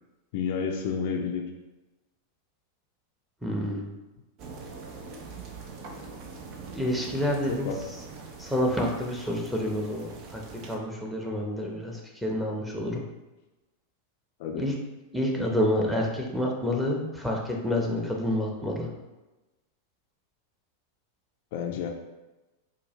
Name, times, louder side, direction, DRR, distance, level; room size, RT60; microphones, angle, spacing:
voice 1, 0.3-1.4 7.5-7.8 14.4-14.6 21.5-21.9, left 6 dB, 60° left, 2 dB, 0.4 m, -30 dB
voice 2, 3.4-3.9 6.7-7.7 8.4-13.0 14.6-14.7 15.1-18.9, left 1 dB, 5° right, -1 dB, 0.8 m, -28 dB
sound 1, 4.4-10.8, right 4 dB, 50° right, 0.6 m, -43 dB
4.5 x 2.3 x 3.1 m, 1.1 s
hypercardioid pair, 100°, 0 cm